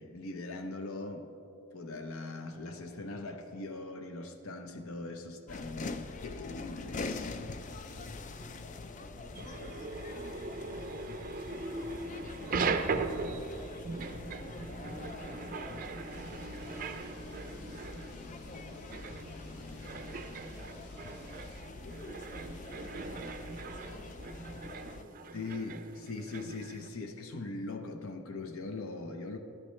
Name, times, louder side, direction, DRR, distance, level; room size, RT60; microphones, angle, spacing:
voice 1, 0.0-1.3 1.7-7.3 25.3-29.4, left 3 dB, 65° left, 0.6 m, -41 dB
sound 1, 5.5-25.0, left 3 dB, 35° left, 0.4 m, -44 dB
voice 2, 7.9-17.8 18.1-25.6, right 1 dB, 10° left, 0.9 m, -54 dB
sound 2, 9.4-26.9, right 4 dB, 40° right, 0.5 m, -39 dB
sound 3, 16.1-21.6, left 1 dB, 80° left, 1.2 m, -56 dB
13.5 x 11.5 x 3.2 m
head